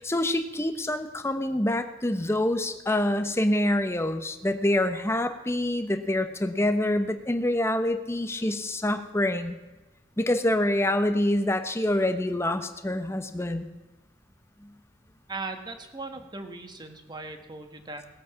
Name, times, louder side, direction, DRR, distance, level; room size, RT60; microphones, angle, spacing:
voice 1, 0.0-9.6 10.2-13.7 14.6-14.7, left 1 dB, 15° left, 8 dB, 0.9 m, -26 dB
voice 2, 15.3-18.1, right 3 dB, 25° right, 6 dB, 1.3 m, -38 dB
18.0 x 8.1 x 5.8 m, 1.1 s
head